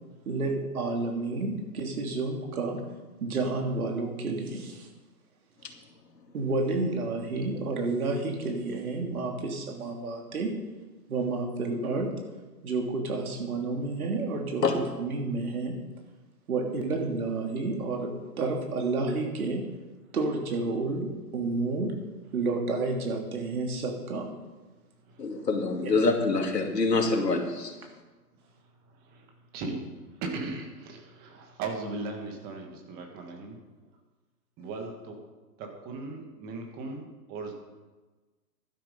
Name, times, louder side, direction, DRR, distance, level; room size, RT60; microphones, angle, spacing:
voice 1, 0.2-2.8 3.2-4.9 6.3-10.6 11.1-12.1 12.6-15.8 16.5-19.6 20.1-22.0 22.3-24.3 25.8-25.9, right 3 dB, 60° right, 2 dB, 3.0 m, -30 dB
voice 2, 25.2-27.7, left 3 dB, 80° left, 2 dB, 2.7 m, -25 dB
voice 3, 30.2-33.6 34.6-35.1 35.6-37.5, right 3 dB, 20° right, 3 dB, 1.5 m, -37 dB
12.0 x 10.5 x 5.3 m, 1.2 s
hypercardioid pair, 145°, 48 cm